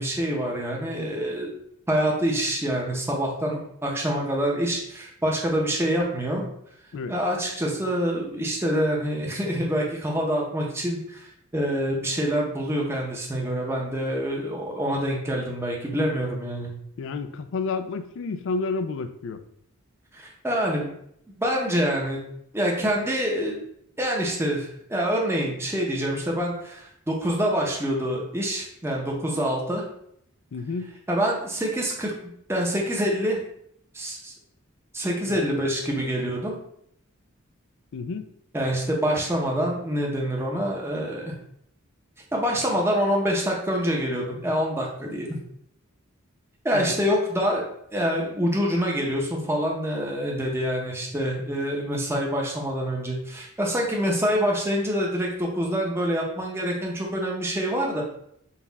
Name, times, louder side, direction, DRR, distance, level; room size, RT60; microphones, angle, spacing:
voice 1, 0.0-1.5 1.9-6.5 7.1-11.3 11.5-16.7 20.1-20.9 21.3-22.2 22.5-23.6 24.0-29.8 31.1-32.1 32.5-33.4 33.9-34.3 34.9-36.6 38.5-41.3 42.3-45.3 46.6-47.6 47.9-58.0, equal, 10° right, -2 dB, 0.7 m, -26 dB
voice 2, 17.0-19.4 30.5-30.9 35.3-35.4 37.9-38.3 46.7-47.0, left 4 dB, 65° left, 10 dB, 0.4 m, -30 dB
4.0 x 2.3 x 4.0 m, 0.70 s
head